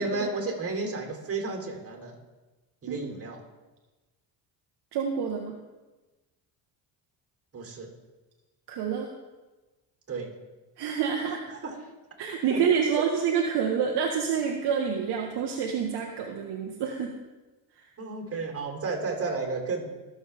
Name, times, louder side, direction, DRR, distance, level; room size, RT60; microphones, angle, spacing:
voice 1, 0.0-2.1 2.8-3.4 7.5-7.9 10.1-10.3 11.5-11.9 12.5-12.6 18.0-20.0, right 3 dB, 30° right, 0 dB, 3.4 m, -32 dB
voice 2, 4.9-5.5 8.7-9.1 10.8-11.4 12.2-17.1, right 7 dB, 60° right, 1 dB, 1.2 m, -27 dB
20.0 x 7.2 x 3.5 m, 1.2 s
supercardioid pair, 90°, 44 cm